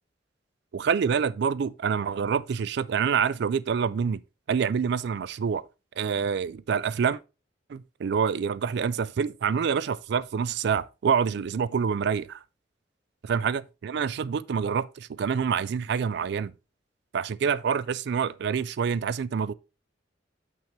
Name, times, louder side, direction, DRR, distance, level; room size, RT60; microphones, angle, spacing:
voice 1, 0.7-4.2 4.5-5.6 6.0-7.2 7.7-12.4 13.2-16.5 17.1-19.5, right 6 dB, 60° right, 0.3 m, -27 dB
7.2 x 6.1 x 3.0 m
head